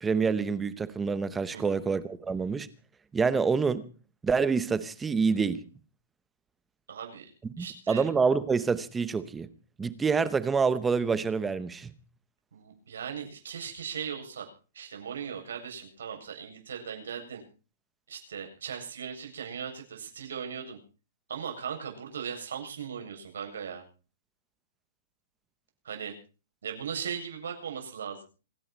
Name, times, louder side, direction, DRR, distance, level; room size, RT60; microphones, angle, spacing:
voice 1, 0.0-2.7 3.1-3.8 4.2-5.6 7.6-9.5 9.8-11.9, right 5 dB, 5° right, 0.8 m, -27 dB
voice 2, 6.9-7.3 7.6-8.0 12.5-14.5 14.7-17.4 18.1-20.8 21.3-23.8 25.8-26.1 26.6-28.2, right 7 dB, 85° right, 7.8 m, -38 dB
26.5 x 11.0 x 4.5 m
hypercardioid pair, 180°, 0 cm